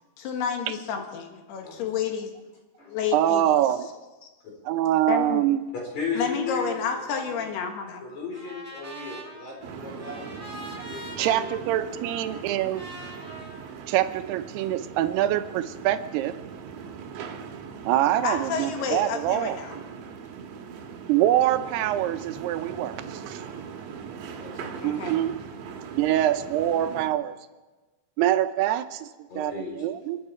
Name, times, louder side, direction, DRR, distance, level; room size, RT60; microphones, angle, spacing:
voice 1, 0.2-2.3 2.9-3.5 5.1-5.4 6.2-8.0 18.2-19.8 24.8-25.2, left 6 dB, 80° left, 4 dB, 3.5 m, -30 dB
voice 2, 1.5-2.0 2.8-2.9 5.9-7.4 8.0-10.3 10.7-11.5 24.1-25.2 29.3-29.7, left 5 dB, 45° left, -1 dB, 5.5 m, -36 dB
voice 3, 3.1-3.9 4.7-5.6 11.2-12.8 13.9-16.3 17.9-19.6 21.1-23.4 24.8-25.4 25.9-27.3 28.2-29.1 29.4-30.2, right 12 dB, 85° right, 10 dB, 2.8 m, -24 dB
Trumpet, 8.3-14.5, right 1 dB, 10° right, 3.3 m, -44 dB
sound 1, 9.6-27.1, right 6 dB, 65° right, 2.7 m, -40 dB
29.0 x 9.9 x 4.9 m, 1.2 s
omnidirectional pair, 4.6 m